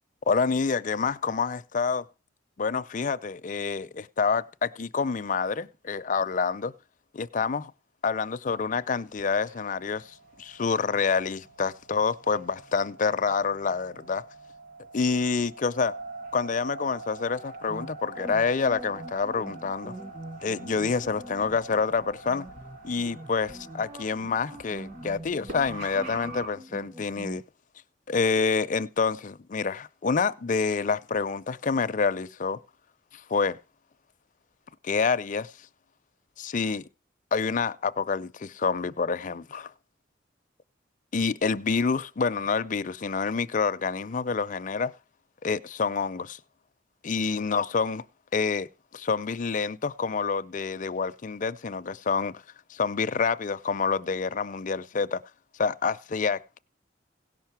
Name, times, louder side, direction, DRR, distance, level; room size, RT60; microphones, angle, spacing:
voice 1, 0.3-2.1 2.6-6.7 7.1-7.7 8.0-14.3 14.9-15.9 16.3-19.9 20.4-22.5 22.8-27.4 28.1-32.6 33.1-33.6 34.8-35.5 36.4-36.9 37.3-39.7 41.1-44.9 45.4-46.4 47.0-48.0 48.3-52.4 52.7-55.2 55.6-56.6, left 5 dB, 40° left, 0.5 m, -27 dB
sound 1, 8.5-26.5, right 3 dB, 50° right, 2.6 m, -45 dB
sound 2, 17.7-27.4, right 1 dB, 15° right, 0.5 m, -44 dB
16.5 x 5.7 x 5.9 m
head